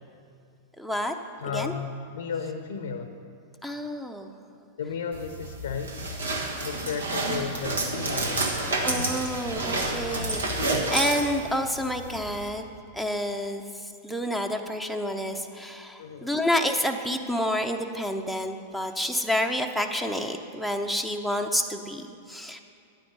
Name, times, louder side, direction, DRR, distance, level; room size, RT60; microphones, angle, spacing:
voice 1, 0.8-1.1 1.5-1.7 3.6-4.4 8.8-12.6 12.9-13.6 14.0-22.6, equal, ahead, 5 dB, 0.7 m, -29 dB
voice 2, 1.4-3.1 4.8-6.0 6.6-8.6 16.0-16.3, left 6 dB, 75° left, 7 dB, 0.7 m, -34 dB
sound 1, 5.1-12.5, right 2 dB, 85° right, 1.5 m, -29 dB
9.9 x 9.3 x 5.4 m, 2.4 s
hypercardioid pair, 105°, 0 cm